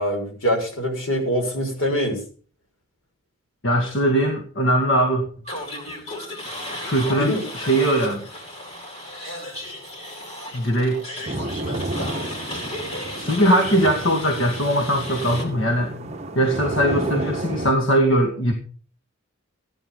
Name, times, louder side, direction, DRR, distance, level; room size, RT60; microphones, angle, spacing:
voice 1, 0.0-2.2 7.1-7.4, equal, 80° left, 3 dB, 6.2 m, -24 dB
voice 2, 3.6-5.3 6.8-8.2 10.5-11.0 13.2-16.0 16.3-18.5, right 1 dB, 65° left, 4 dB, 2.4 m, -20 dB
sound 1, 5.4-15.4, left 1 dB, 30° left, 5.6 m, -34 dB
sound 2, 11.3-17.7, right 1 dB, 30° right, 1.3 m, -31 dB
16.5 x 11.0 x 5.6 m, 0.41 s
head